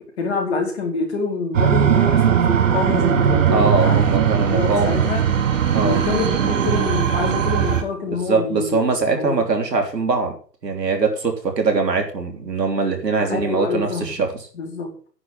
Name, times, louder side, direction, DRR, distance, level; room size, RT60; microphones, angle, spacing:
voice 1, 0.2-5.2 5.8-9.5 13.3-14.2 14.5-14.9, left 4 dB, 40° left, 0 dB, 4.6 m, -26 dB
sound 1, 1.5-7.8, right 8 dB, 50° right, 1.7 m, -19 dB
voice 2, 3.5-5.0 5.7-6.0 8.1-10.4 10.6-14.5, right 4 dB, 80° right, 4 dB, 3.4 m, -22 dB
9.8 x 6.2 x 7.5 m, 0.43 s
hypercardioid pair, 145°, 49 cm